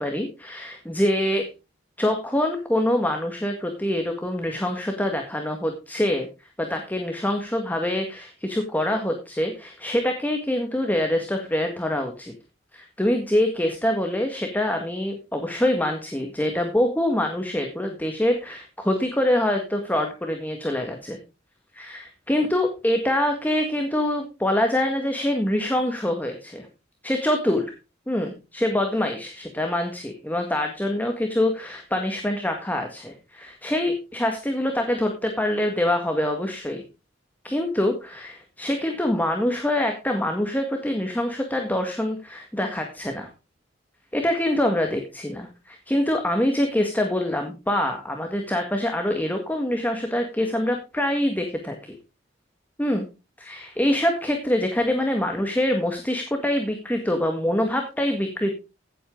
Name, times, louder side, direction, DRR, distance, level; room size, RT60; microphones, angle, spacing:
voice 1, 0.0-1.5 2.0-6.3 6.6-12.3 12.7-21.2 21.7-26.7 27.0-27.7 28.1-36.8 37.4-43.3 44.1-51.9 52.8-53.0 53.4-58.5, left 1 dB, 10° left, 3 dB, 1.8 m, -25 dB
15.5 x 8.5 x 3.8 m, 0.30 s
head